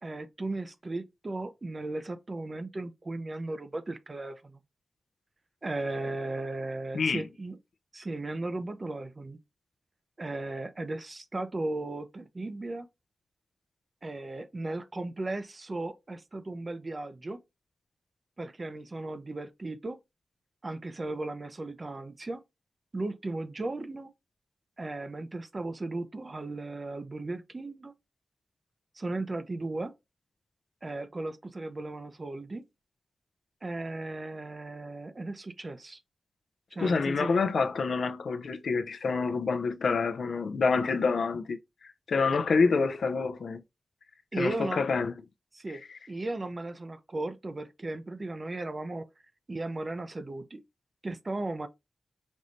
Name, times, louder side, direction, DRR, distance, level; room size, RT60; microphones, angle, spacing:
voice 1, 0.0-4.6 5.6-7.6 7.9-9.4 10.2-12.9 14.0-17.4 18.4-20.0 20.6-22.4 22.9-24.1 24.8-27.9 29.0-29.9 30.8-32.6 33.6-36.0 36.7-37.5 44.3-44.8 45.5-45.8 46.1-49.0 49.5-50.6 51.0-51.7, right 2 dB, 30° right, 0.5 m, -36 dB
voice 2, 36.8-43.6 44.4-45.1, left 4 dB, 70° left, 0.5 m, -27 dB
5.3 x 3.1 x 2.6 m
wide cardioid pair, 145°, 0 cm